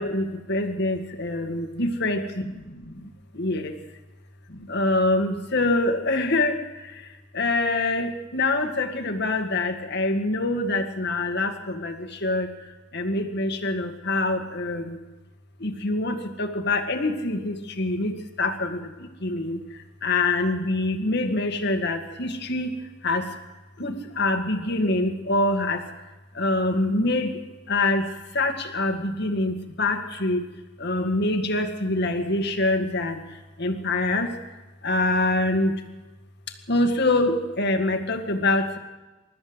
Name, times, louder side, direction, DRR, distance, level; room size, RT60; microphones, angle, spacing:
voice 1, 0.0-2.2 3.4-3.7 4.7-6.6 7.4-11.9 12.2-12.5 12.9-15.0 15.6-18.1 18.4-18.8 19.2-19.6 20.0-22.7 23.0-23.2 23.8-25.8 26.4-27.3 27.7-28.0 28.4-30.4 30.8-33.1 33.6-34.3 34.8-35.7 36.7-38.8, left 2 dB, 60° left, 5 dB, 2.2 m, -24 dB
28.5 x 13.5 x 8.0 m, 1.1 s
head